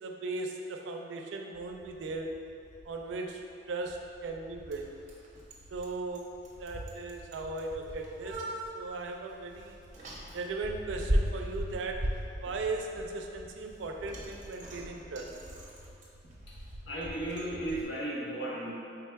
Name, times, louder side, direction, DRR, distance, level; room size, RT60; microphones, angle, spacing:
voice 1, 0.0-2.4 2.9-4.9 5.7-8.5 8.8-9.8 10.3-15.4, right 3 dB, 90° right, 3 dB, 0.4 m, -38 dB
Bicycle, 1.5-17.8, equal, 45° right, 0.7 m, -39 dB
voice 2, 16.9-18.7, right 1 dB, 70° left, -5 dB, 0.8 m, -35 dB
4.5 x 3.4 x 2.2 m, 2.5 s
head